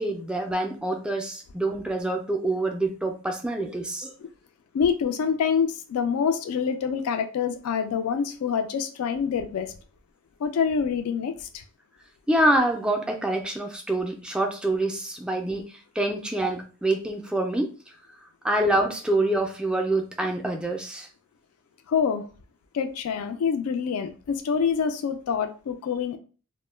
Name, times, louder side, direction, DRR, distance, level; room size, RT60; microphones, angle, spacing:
voice 1, 0.0-4.1 12.3-17.7 18.4-21.1, right 1 dB, 5° right, 2 dB, 0.3 m, -26 dB
voice 2, 4.7-9.7 10.4-11.6 21.9-22.2 22.7-26.2, left 6 dB, 75° left, 5 dB, 0.3 m, -26 dB
2.1 x 2.0 x 3.1 m, 0.36 s
head